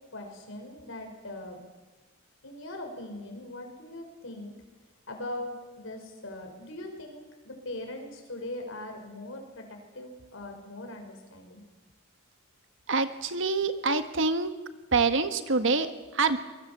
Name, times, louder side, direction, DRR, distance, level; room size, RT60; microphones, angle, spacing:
voice 1, 0.0-1.6 2.4-4.5 5.1-11.6, left 1 dB, 70° left, 3 dB, 5.5 m, -41 dB
voice 2, 12.9-14.5 14.9-16.4, right 4 dB, 65° right, 9 dB, 1.6 m, -26 dB
24.5 x 21.5 x 7.5 m, 1.2 s
head